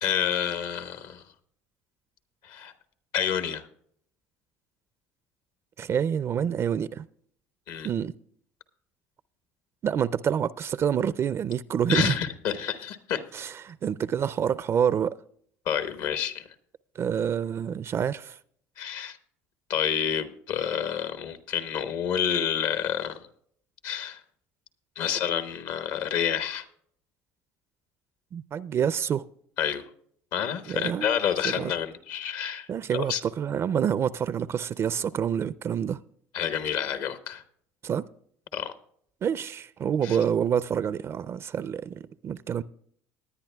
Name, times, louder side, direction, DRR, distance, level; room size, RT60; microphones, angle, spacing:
voice 1, 0.0-1.2 2.4-2.7 3.1-3.7 7.7-7.9 11.9-13.2 15.6-16.5 18.8-19.2 19.7-23.2 23.8-24.2 25.0-26.6 29.6-29.8 30.3-33.2 36.3-37.4 38.5-38.7 40.0-40.2, left 9 dB, 70° left, 1.1 m, -29 dB
voice 2, 5.8-7.0 7.8-8.1 9.8-12.2 13.3-15.1 17.0-18.4 28.3-29.3 30.7-31.2 31.4-31.7 32.7-36.0 37.8-38.1 39.2-42.6, right 8 dB, 40° right, 0.4 m, -27 dB
19.0 x 10.0 x 2.3 m
supercardioid pair, 80°, 7 cm